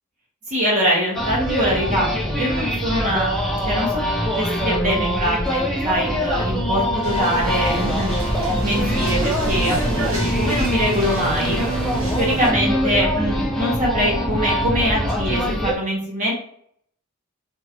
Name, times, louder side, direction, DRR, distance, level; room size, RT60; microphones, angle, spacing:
voice 1, 0.5-11.6 12.2-16.3, equal, 35° right, -5 dB, 1.2 m, -23 dB
sound 1, 1.1-15.7, equal, ahead, 0.4 m, -23 dB
sound 2, 7.0-12.5, equal, 75° right, 1.5 m, -28 dB
2.9 x 2.4 x 3.0 m, 0.65 s
head